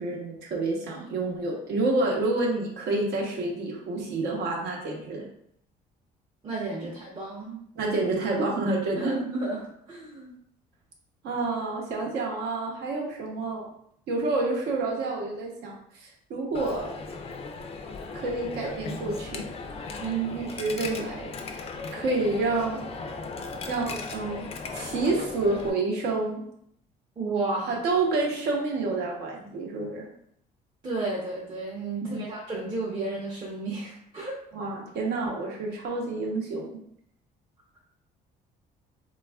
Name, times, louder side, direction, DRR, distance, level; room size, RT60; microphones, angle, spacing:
voice 1, 0.0-5.3 7.8-9.1 11.2-13.7 14.1-16.9 18.1-19.4 20.3-21.3 21.9-22.8 23.7-24.5 24.7-26.4 27.7-30.1 32.0-32.3 34.5-36.8, right 3 dB, 75° right, -1 dB, 0.8 m, -28 dB
voice 2, 6.4-7.6 8.9-10.3 20.0-20.4 27.2-27.8 30.8-34.3, right 3 dB, 30° right, -6 dB, 0.7 m, -32 dB
Coin (dropping), 16.5-25.7, left 4 dB, 35° left, 0.4 m, -37 dB
3.3 x 2.3 x 2.3 m, 0.70 s
cardioid pair, 110°, 17 cm